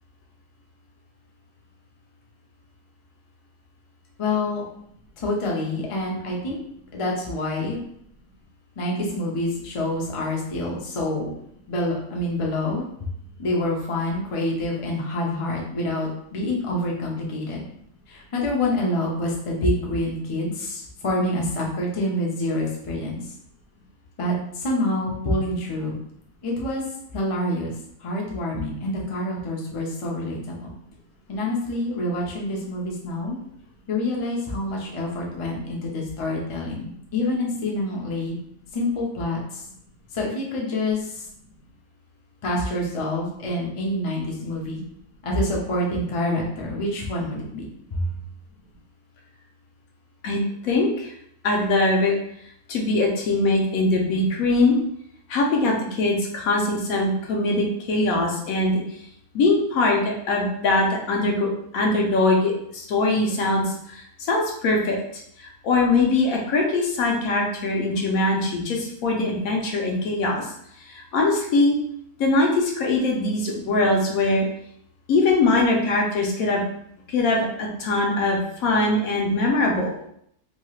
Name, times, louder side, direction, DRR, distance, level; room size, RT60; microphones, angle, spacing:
voice 1, 4.2-4.6 5.2-6.6 6.9-7.8 8.8-11.3 11.7-12.8 13.4-17.6 18.1-23.2 24.2-26.0 26.4-26.8 27.1-27.7 28.0-30.7 31.3-33.4 33.9-38.4 38.7-39.6 40.1-41.3 42.4-44.8 45.2-47.6 47.9-48.1, left 1 dB, 55° left, -2 dB, 0.3 m, -27 dB
voice 2, 50.2-51.1 51.4-52.1 52.7-54.8 55.3-59.0 59.3-70.5 70.8-71.7 72.2-74.5 75.1-76.6 77.1-79.9, left 2 dB, 75° left, 0 dB, 1.1 m, -22 dB
3.1 x 2.9 x 2.3 m, 0.71 s
omnidirectional pair, 1.6 m